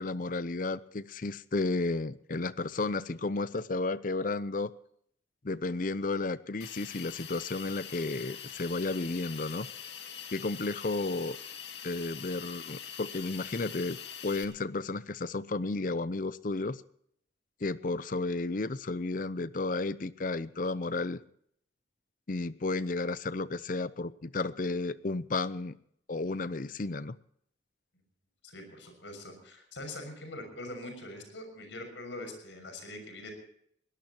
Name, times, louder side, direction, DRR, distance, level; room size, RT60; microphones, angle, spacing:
voice 1, 0.0-4.7 5.4-9.7 10.3-11.4 11.8-14.0 14.2-16.8 17.6-21.2 22.3-25.8 26.1-27.1, left 3 dB, 45° left, 16 dB, 0.6 m, -33 dB
Hiss, 6.6-14.4, left 8 dB, 65° left, 2.2 m, -44 dB
voice 2, 28.4-33.3, left 1 dB, 85° left, 6 dB, 6.4 m, -43 dB
22.5 x 18.0 x 2.9 m, 0.67 s
head